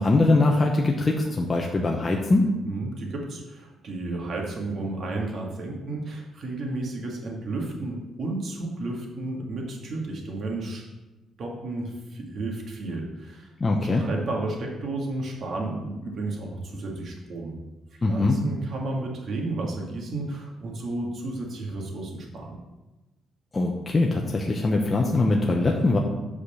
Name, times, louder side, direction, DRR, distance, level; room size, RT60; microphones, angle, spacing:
voice 1, 0.0-2.5 13.6-14.0 18.0-18.4 23.5-26.0, left 2 dB, 25° left, 0 dB, 1.0 m, -22 dB
voice 2, 2.6-10.9 11.4-13.5 13.9-17.5 17.9-22.6, right 2 dB, 50° right, 0 dB, 2.2 m, -32 dB
8.7 x 5.0 x 7.1 m, 1.1 s
cardioid pair, 130°, 0 cm